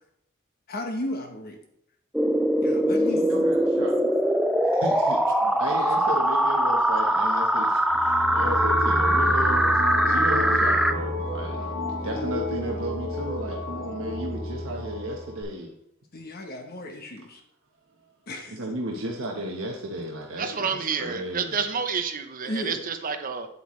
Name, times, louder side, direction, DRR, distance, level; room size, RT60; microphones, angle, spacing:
voice 1, 0.7-1.6 2.6-3.4 3.7-4.1 5.4-5.8 10.5-10.6 16.1-17.4 18.3-18.6 22.4-22.9, left 1 dB, 50° left, 3 dB, 1.1 m, -35 dB
sound 1, 2.1-10.9, right 1 dB, ahead, 0.4 m, -22 dB
voice 2, 3.1-4.0 4.6-5.2 5.6-9.8 10.0-11.7 12.0-15.7 18.5-21.7, right 1 dB, 80° right, 0 dB, 1.2 m, -34 dB
sound 2, 7.9-15.4, left 1 dB, 65° left, 2.4 m, -30 dB
voice 3, 20.4-23.5, right 6 dB, 45° right, 7 dB, 0.7 m, -29 dB
9.1 x 8.0 x 3.2 m, 0.75 s
head